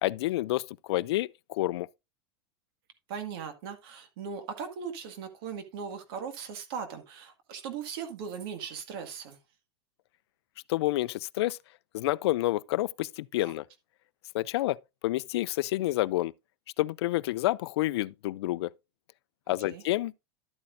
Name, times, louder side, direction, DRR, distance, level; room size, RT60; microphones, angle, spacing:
voice 1, 0.0-1.9 10.7-11.6 11.9-13.6 14.3-16.3 16.8-18.7 19.5-20.1, left 16 dB, 80° left, 0.4 m, -29 dB
voice 2, 3.1-9.4 13.4-13.5 19.6-19.8, right 6 dB, 60° right, 1.9 m, -39 dB
12.0 x 8.6 x 2.5 m
supercardioid pair, 155°, 14 cm